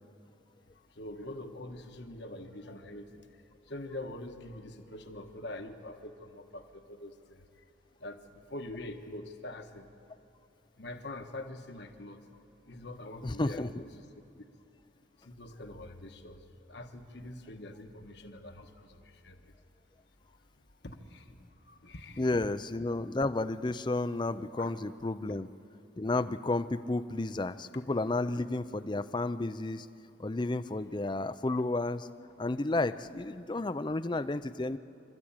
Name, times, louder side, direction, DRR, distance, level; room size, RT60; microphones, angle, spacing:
voice 1, 0.9-3.3 3.7-7.4 8.0-9.9 10.8-12.2 12.7-13.6 15.2-19.5 20.8-22.2 24.5-24.7, left 1 dB, 65° left, 6 dB, 1.4 m, -44 dB
voice 2, 13.2-13.8 22.2-25.5 26.0-29.9 30.2-32.1 32.4-34.8, left 2 dB, 25° left, 13 dB, 0.5 m, -32 dB
25.5 x 13.5 x 8.9 m, 2.7 s
head